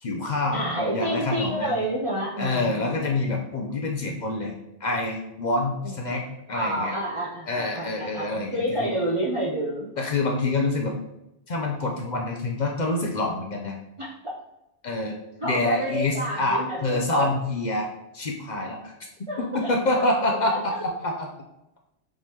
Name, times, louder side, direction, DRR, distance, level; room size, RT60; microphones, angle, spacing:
voice 1, 0.0-1.9 2.4-4.5 4.8-6.2 6.5-7.0 7.5-9.0 10.0-11.0 11.5-13.8 14.8-15.2 15.4-17.9 18.1-19.1 19.4-21.3, left 2 dB, 50° left, 1 dB, 0.5 m, -26 dB
voice 2, 0.5-2.9 5.8-5.9 6.5-9.9 14.0-14.3 15.4-17.3 19.3-20.1 20.5-20.8, right 1 dB, 40° right, -4 dB, 0.5 m, -29 dB
4.6 x 3.7 x 2.8 m, 0.88 s
omnidirectional pair, 1.2 m